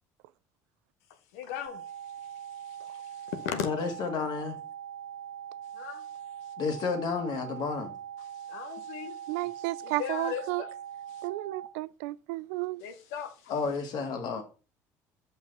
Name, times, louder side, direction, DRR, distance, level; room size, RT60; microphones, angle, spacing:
voice 1, 1.3-3.7 5.7-6.1 6.4-6.5 8.3-9.4 9.8-10.7 11.1-11.3 12.8-13.5, left 8 dB, 85° left, 0.9 m, -38 dB
sound 1, 1.7-11.7, right 9 dB, 55° right, 1.1 m, -42 dB
voice 2, 3.6-4.6 6.6-7.9 13.5-14.4, left 5 dB, 60° left, 1.8 m, -31 dB
voice 3, 9.3-10.6 11.2-12.8, right 20 dB, 80° right, 0.3 m, -33 dB
5.8 x 5.3 x 5.2 m
hypercardioid pair, 75°, 8 cm